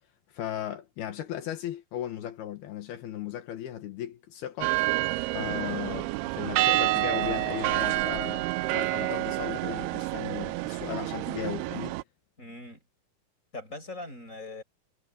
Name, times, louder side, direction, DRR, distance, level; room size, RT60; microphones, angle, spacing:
voice 1, 0.3-4.8 5.3-12.0, left 11 dB, 80° left, 3.5 m, -36 dB
sound 1, 4.6-12.0, right 20 dB, 90° right, 2.6 m, -28 dB
voice 2, 12.4-12.8 13.5-14.6, left 2 dB, 20° left, 8.2 m, -41 dB
omnidirectional pair, 4.4 m